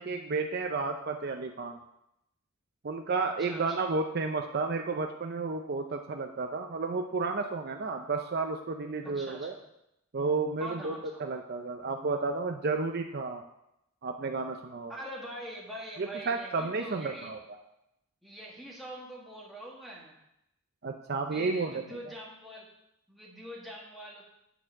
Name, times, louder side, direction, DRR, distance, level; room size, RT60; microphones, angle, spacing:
voice 1, 0.0-1.8 2.8-9.5 10.1-10.9 11.2-13.4 14.0-14.9 16.0-17.4 20.8-21.8, right 4 dB, 50° right, 4 dB, 0.5 m, -32 dB
voice 2, 3.4-3.9 9.0-9.6 10.6-11.2 14.9-17.3 18.2-20.1 21.3-22.7 23.1-24.2, right 1 dB, ahead, -4 dB, 1.7 m, -43 dB
8.9 x 4.5 x 5.9 m, 0.83 s
head